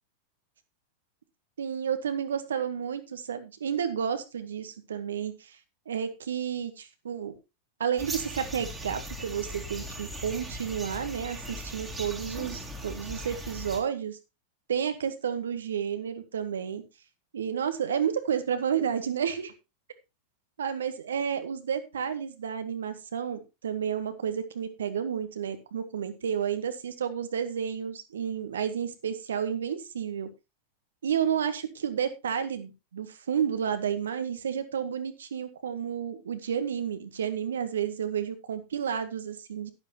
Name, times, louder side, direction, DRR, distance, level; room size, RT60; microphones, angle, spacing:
voice 1, 1.6-5.6 5.9-7.3 7.8-14.2 14.7-16.8 17.3-19.5 20.6-30.3 31.0-39.7, right 8 dB, 65° right, 10 dB, 1.2 m, -31 dB
sound 1, 8.0-13.8, equal, 10° right, 2.3 m, -39 dB
11.5 x 10.5 x 3.0 m, 0.26 s
figure-of-eight pair, 90°, 0 cm